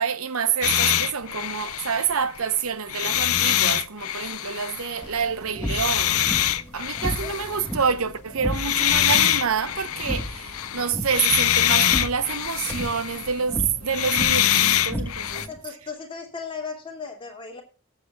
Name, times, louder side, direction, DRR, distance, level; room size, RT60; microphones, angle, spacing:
voice 1, 0.0-6.3 6.7-15.5, right 6 dB, 80° right, 0.9 m, -27 dB
sound 1, 0.6-2.5 2.9-5.0 5.7-7.6 8.5-13.4 13.8-15.5, left 11 dB, 90° left, 0.7 m, -24 dB
sound 2, 5.0-15.6, equal, 10° left, 1.4 m, -34 dB
voice 2, 15.3-17.6, left 5 dB, 25° left, 2.5 m, -36 dB
20.5 x 7.8 x 2.4 m
head